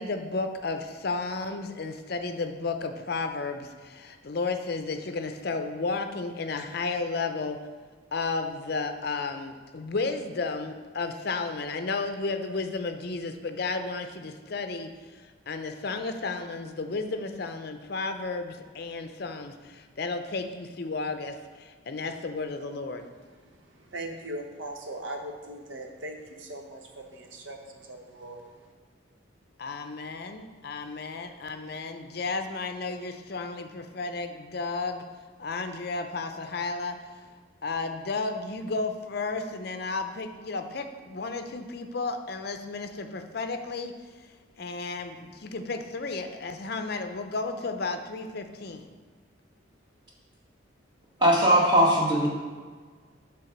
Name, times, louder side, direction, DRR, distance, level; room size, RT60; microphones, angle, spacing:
voice 1, 0.0-7.6 8.1-23.0 29.6-35.0 35.4-37.0 37.6-43.9 44.6-48.9, left 3 dB, 50° left, 7 dB, 0.5 m, -33 dB
voice 2, 23.3-28.7, right 1 dB, 75° right, 3 dB, 1.0 m, -40 dB
voice 3, 51.2-52.3, right 1 dB, 20° right, -3 dB, 1.3 m, -20 dB
8.0 x 3.5 x 5.9 m, 1.5 s
head